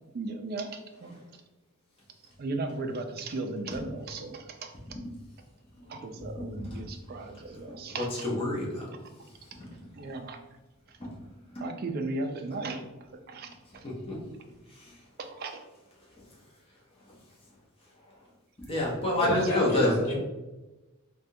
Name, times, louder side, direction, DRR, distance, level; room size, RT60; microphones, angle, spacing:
voice 1, 0.1-1.1 2.4-4.7 5.9-8.2 10.0-10.4 10.9-11.0 11.6-12.8 13.3-13.8 15.2-15.6 19.3-19.4, right 3 dB, 45° right, 5 dB, 0.3 m, -36 dB
voice 2, 6.2-6.8 8.2-8.9 11.0-11.1 14.1-14.2 18.6-19.9, left 1 dB, 25° left, -4 dB, 0.7 m, -28 dB
voice 3, 19.2-20.2, left 1 dB, 70° left, -4 dB, 1.1 m, -29 dB
3.4 x 2.3 x 2.6 m, 1.1 s
head